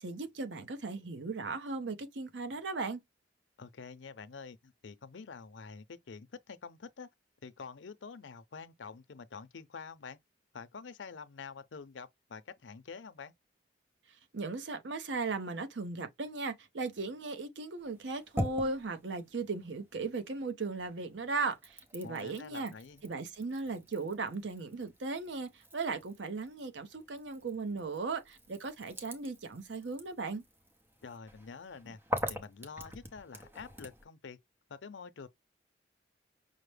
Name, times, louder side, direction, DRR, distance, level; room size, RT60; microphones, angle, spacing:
voice 1, 0.0-3.0 14.3-22.7 23.0-30.4, right 3 dB, 85° right, 0.7 m, -37 dB
voice 2, 3.6-7.1 7.4-10.2 10.5-13.3 22.0-23.0 31.0-32.0 32.3-34.4 34.7-35.3, left 5 dB, 90° left, 0.6 m, -47 dB
sound 1, 17.8-20.4 20.8-34.0, equal, 10° right, 0.7 m, -44 dB
5.6 x 2.1 x 3.3 m
head